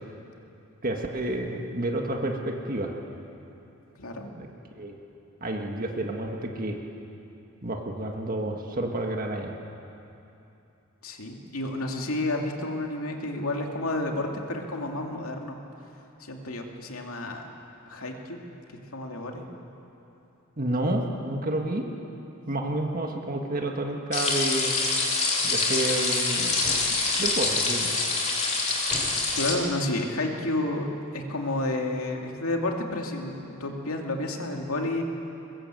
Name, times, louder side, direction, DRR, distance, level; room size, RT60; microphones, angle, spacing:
voice 1, 0.8-2.9 4.4-4.5 4.8-4.9 5.4-6.8 7.6-9.5 20.6-21.8 22.5-24.8 25.4-26.6 27.2-27.9, right 1 dB, 40° right, 2 dB, 1.7 m, -30 dB
voice 2, 4.0-4.3 11.0-15.6 16.2-17.4 17.9-18.4 18.7-19.5 29.3-30.9 31.1-35.0, left 2 dB, 85° left, 2 dB, 2.6 m, -30 dB
sound 1, 24.1-29.5, left 3 dB, 30° left, 3.0 m, -25 dB
sound 2, 26.6-27.3 28.9-29.4, left 1 dB, 10° left, 5.2 m, -40 dB
22.5 x 21.5 x 7.8 m, 2.9 s
head